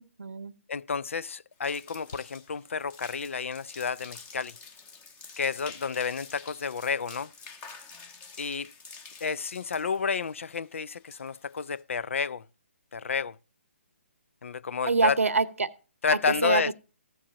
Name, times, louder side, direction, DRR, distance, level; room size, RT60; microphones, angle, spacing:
voice 1, 0.0-0.5 14.8-15.7 16.1-16.7, right 4 dB, 90° right, 0.8 m, -26 dB
voice 2, 0.7-4.6 5.4-7.3 8.4-8.7 9.2-12.4 12.9-13.4 14.4-15.2 16.0-16.7, left 6 dB, 70° left, 0.4 m, -30 dB
sound 1, 1.5-11.8, left 4 dB, 20° left, 1.1 m, -49 dB
15.0 x 7.2 x 2.8 m
hypercardioid pair, 145°, 7 cm